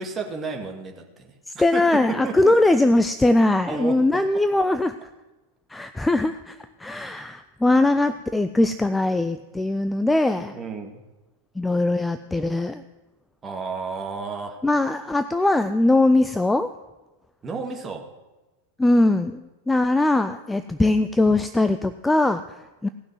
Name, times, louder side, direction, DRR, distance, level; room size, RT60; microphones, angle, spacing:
voice 1, 0.0-1.3 1.7-1.8 2.2-2.5 3.7-4.0 10.5-11.0 13.4-14.6 17.4-18.1, right 4 dB, 20° right, 3 dB, 1.9 m, -32 dB
voice 2, 1.5-4.9 5.7-10.6 11.5-12.8 14.6-16.7 18.8-22.9, left 2 dB, 5° left, 10 dB, 0.4 m, -21 dB
17.0 x 6.1 x 7.7 m, 1.1 s
figure-of-eight pair, 90°, 0 cm